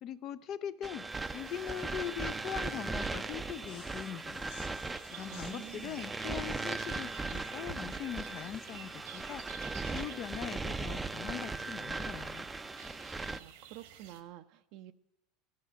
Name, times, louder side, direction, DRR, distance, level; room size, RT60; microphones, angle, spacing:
voice 1, 0.0-1.1 1.3-4.5 5.1-9.4 9.9-12.5, left 10 dB, 45° left, 12 dB, 0.5 m, -41 dB
sound 1, 0.8-13.4, right 3 dB, 15° right, 0.5 m, -38 dB
sound 2, 1.1-14.2, right 8 dB, 80° right, 1.5 m, -53 dB
sound 3, 3.6-9.8, left 10 dB, 70° left, 1.2 m, -59 dB
voice 2, 5.3-6.0 13.4-14.9, right 14 dB, 65° right, 8 dB, 0.6 m, -49 dB
14.5 x 10.5 x 6.3 m, 0.88 s
supercardioid pair, 115°, 0 cm